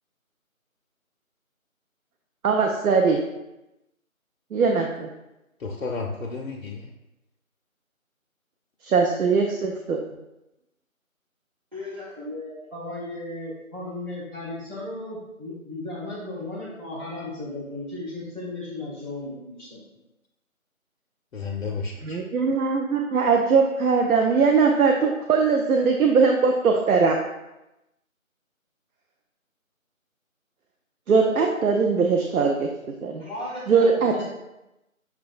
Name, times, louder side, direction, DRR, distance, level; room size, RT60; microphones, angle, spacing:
voice 1, 2.4-3.2 4.5-5.1 8.8-10.0 22.0-27.2 31.1-32.7 33.0-33.3 33.7-34.1, right 5 dB, 85° right, 2 dB, 0.5 m, -20 dB
voice 2, 5.6-6.9 10.1-10.2 21.3-22.2, left 4 dB, 65° left, -2 dB, 0.5 m, -32 dB
voice 3, 11.7-19.8 33.2-34.2, left 2 dB, 35° right, -10 dB, 0.7 m, -35 dB
5.8 x 2.2 x 2.4 m, 0.95 s
figure-of-eight pair, 170°, 42 cm